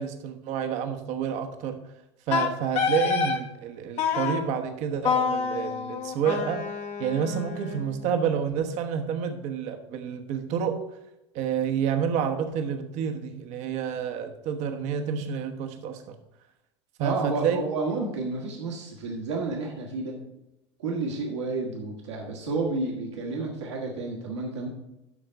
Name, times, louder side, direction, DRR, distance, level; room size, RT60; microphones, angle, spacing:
voice 1, 0.0-1.8 2.3-11.0 11.3-16.2 17.0-17.6, right 7 dB, 55° right, 5 dB, 1.1 m, -29 dB
Wind instrument woodwind instrument, 2.3-3.4 4.0-4.4 5.0-8.0, left 6 dB, 50° left, 1.2 m, -28 dB
voice 2, 17.0-20.2 20.8-24.7, right 3 dB, 75° right, -1 dB, 1.7 m, -31 dB
12.5 x 4.4 x 5.1 m, 0.92 s
hypercardioid pair, 80°, 15 cm